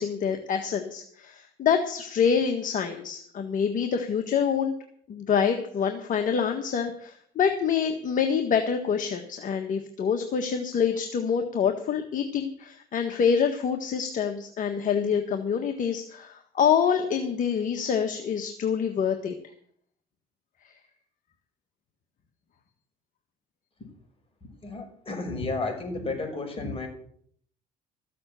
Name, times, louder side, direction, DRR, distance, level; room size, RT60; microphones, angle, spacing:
voice 1, 0.0-4.7 5.1-19.3, left 7 dB, 55° left, 5 dB, 1.7 m, -26 dB
voice 2, 24.6-26.9, left 3 dB, 35° left, 3 dB, 6.1 m, -32 dB
14.5 x 7.7 x 9.0 m, 0.62 s
supercardioid pair, 85°, 17 cm